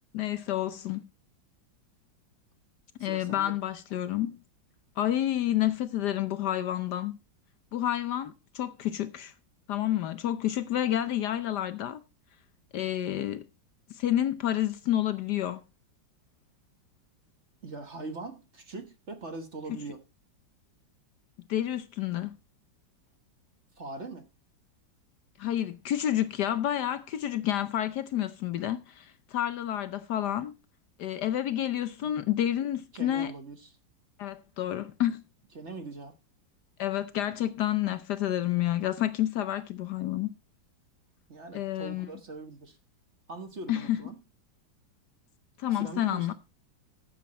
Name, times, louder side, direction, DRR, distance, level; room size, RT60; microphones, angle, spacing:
voice 1, 0.1-1.1 3.0-4.4 5.0-7.1 7.7-9.3 9.7-12.0 12.7-13.4 13.9-15.6 19.7-19.8 21.5-22.3 25.4-30.5 31.0-33.3 34.2-35.2 36.8-40.3 41.5-42.1 43.7-44.0 45.6-46.3, left 12 dB, 65° left, 1.2 m, -29 dB
voice 2, 3.0-3.6 17.6-20.0 23.8-24.3 32.0-32.3 32.9-33.7 35.5-36.1 41.3-42.8 43.3-44.2 45.7-46.3, right 3 dB, 40° right, 1.5 m, -41 dB
13.5 x 7.3 x 4.2 m
omnidirectional pair, 2.1 m